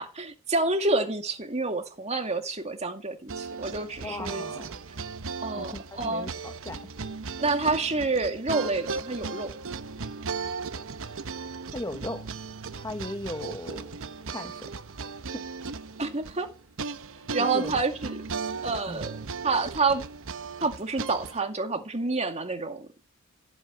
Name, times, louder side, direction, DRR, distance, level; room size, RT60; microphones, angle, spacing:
voice 1, 0.0-4.4 5.4-6.3 7.4-9.5 16.0-16.5 17.3-18.2 18.6-19.2 19.4-20.0 20.6-23.1, right 3 dB, 30° right, 2.3 m, -28 dB
sound 1, 3.3-21.4, right 4 dB, 60° right, 1.0 m, -37 dB
voice 2, 4.0-4.7 5.6-6.9 11.7-12.3 12.7-14.0 14.3-15.5 17.1-17.8 18.9-19.0, left 1 dB, 15° left, 1.0 m, -38 dB
16.0 x 8.6 x 9.0 m
head